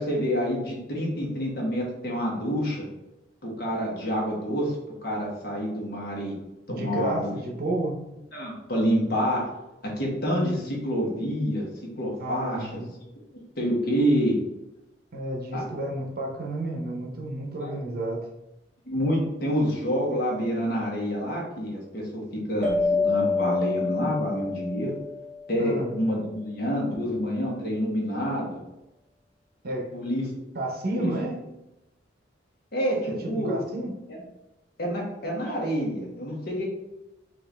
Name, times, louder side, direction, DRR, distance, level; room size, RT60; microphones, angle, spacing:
voice 1, 0.0-2.9 3.4-4.8 5.0-6.4 6.7-7.3 8.3-9.5 10.0-11.7 12.0-12.8 13.6-14.3 15.5-15.6 17.6-17.7 18.9-22.2 22.5-24.9 25.5-28.6 29.9-30.3 30.9-31.1 32.7-33.6 34.8-36.7, equal, 55° left, -2 dB, 1.3 m, -27 dB
voice 2, 6.7-8.0 12.2-12.9 15.1-18.3 25.6-25.9 29.6-29.9 30.5-31.4 33.2-33.9, right 1 dB, 55° right, 0 dB, 0.8 m, -31 dB
sound 1, 22.6-25.6, left 4 dB, 5° left, 1.5 m, -27 dB
4.4 x 2.6 x 3.4 m, 0.96 s
head